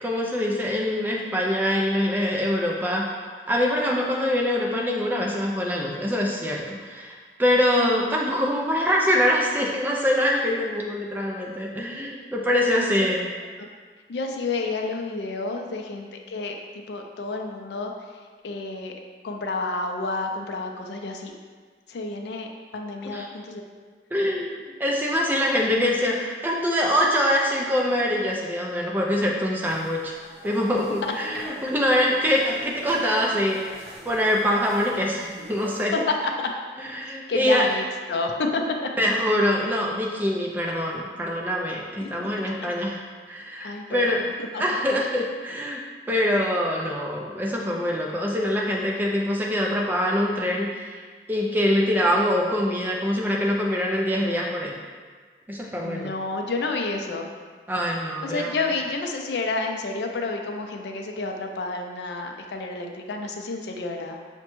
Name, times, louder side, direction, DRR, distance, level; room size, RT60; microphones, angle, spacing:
voice 1, 0.0-3.1 3.5-13.3 23.0-23.3 24.1-30.1 30.4-33.8 34.0-35.9 36.8-37.8 39.0-44.3 44.6-45.8 46.1-51.0 51.3-54.7 55.5-56.1 57.7-58.5, equal, 10° right, -2 dB, 0.3 m, -24 dB
voice 2, 14.1-17.9 18.4-18.9 19.2-21.3 21.9-22.5 22.7-23.6 31.0-31.1 36.2-36.5 37.3-38.9 42.0-42.1 42.4-42.7 43.6-44.2 44.5-44.6 55.8-57.3 58.2-64.2, left 3 dB, 80° left, 3 dB, 0.4 m, -30 dB
sound 1, 29.7-35.8, right 1 dB, 65° right, 0.6 m, -42 dB
5.8 x 2.2 x 3.0 m, 1.5 s
head